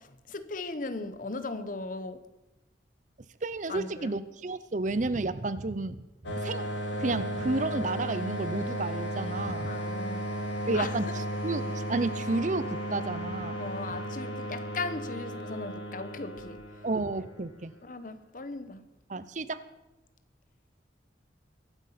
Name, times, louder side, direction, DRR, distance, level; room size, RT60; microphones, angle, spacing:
voice 1, 0.0-2.2 3.7-4.1 9.7-10.3 10.7-11.1 13.6-16.6 17.8-18.8, left 3 dB, 45° left, 1.0 m, -37 dB
voice 2, 3.4-6.0 6.4-6.7 7.0-9.8 10.7-11.1 11.4-13.6 16.8-17.7 19.1-19.6, right 2 dB, 40° right, 0.6 m, -31 dB
sound 1, 6.2-17.6, equal, 80° left, 2.1 m, -35 dB
23.0 x 8.2 x 5.8 m
head